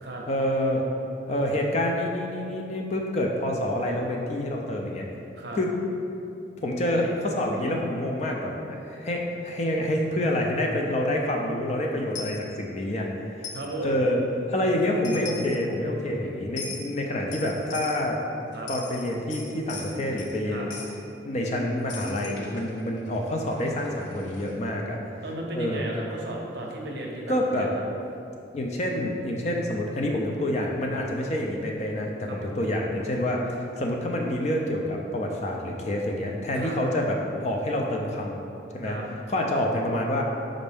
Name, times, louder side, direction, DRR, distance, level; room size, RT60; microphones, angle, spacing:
voice 1, 0.3-0.8 1.3-5.1 5.5-5.8 6.6-13.1 13.4-13.5 13.8-14.2 14.5-18.2 18.7-20.7 21.2-25.0 25.5-25.8 27.3-27.7 28.5-38.4 38.7-39.0 39.3-40.2, left 1 dB, 35° left, 0 dB, 0.4 m, -27 dB
Coin (dropping), 12.1-12.4 13.4-13.7 14.8-14.9 15.0-15.6 16.6-16.9 17.3-18.1 18.5-20.4 20.7-20.9 21.9-24.5, left 4 dB, 90° left, 0.6 m, -40 dB
voice 2, 13.5-14.0 16.0-16.2 18.5-18.7 20.5-20.7 25.2-27.8 32.3-32.6 36.5-36.8 38.8-39.0, right 1 dB, 70° right, -1 dB, 0.6 m, -35 dB
5.2 x 2.6 x 3.4 m, 2.7 s
head